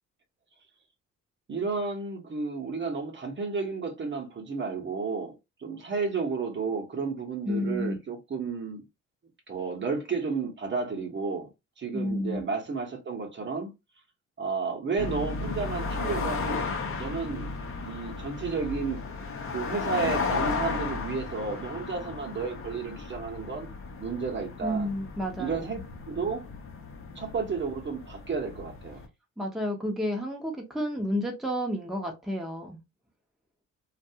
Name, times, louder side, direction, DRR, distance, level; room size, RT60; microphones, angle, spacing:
voice 1, 1.5-5.4 5.6-8.8 9.5-11.5 11.8-13.7 14.4-17.5 17.8-19.0 19.5-23.7 24.0-24.9 25.4-25.8 26.1-26.4 27.2-29.0, right 4 dB, 40° right, 0.9 m, -32 dB
voice 2, 7.4-8.0 11.9-12.4 24.6-25.7 29.4-32.8, equal, ahead, 0.8 m, -31 dB
sound 1, 15.0-29.1, left 4 dB, 45° left, 0.8 m, -34 dB
2.5 x 2.3 x 2.7 m
cardioid pair, 90°, 30 cm